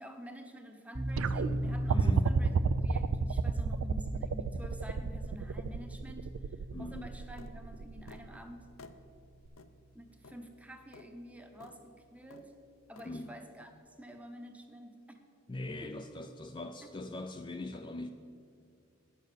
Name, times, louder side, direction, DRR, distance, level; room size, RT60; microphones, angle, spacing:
voice 1, 0.0-2.5 2.8-8.7 9.9-12.6 12.9-15.2 15.8-16.3 16.8-16.9, right 1 dB, 5° right, 5 dB, 0.8 m, -49 dB
sound 1, 0.9-9.8, equal, 40° right, 1.5 m, -40 dB
sound 2, 1.2-8.3 9.5-9.6, right 6 dB, 75° right, 0.4 m, -32 dB
voice 2, 1.9-2.2 6.7-7.1 13.0-13.3 15.5-18.1, left 2 dB, 25° left, 6 dB, 0.3 m, -41 dB
sound 3, 7.4-7.6 8.1-8.3 8.8-9.0 9.6-9.7 10.2-10.4 10.9-11.1 11.6-11.8 12.3-12.5 13.0-13.1, left 4 dB, 80° left, 0.6 m, -53 dB
10.0 x 6.8 x 6.6 m, 2.4 s
head